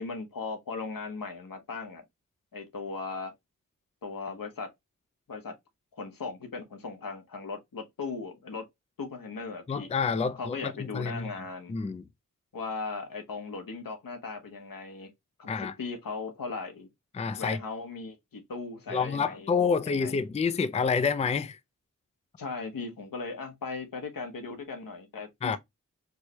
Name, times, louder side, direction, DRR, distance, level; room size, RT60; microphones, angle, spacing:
voice 1, 0.0-2.0 2.5-3.3 4.0-4.7 5.3-5.5 5.9-8.6 9.0-9.9 10.4-11.7 12.5-15.1 15.4-16.9 17.4-20.2 22.4-25.6, left 4 dB, 90° left, 0.9 m, -38 dB
voice 2, 9.7-11.3 11.7-12.0 15.5-15.7 17.1-17.6 18.9-21.6 25.4-25.6, left 5 dB, 20° left, 0.3 m, -28 dB
4.5 x 2.1 x 2.8 m
wide cardioid pair, 70°, 33 cm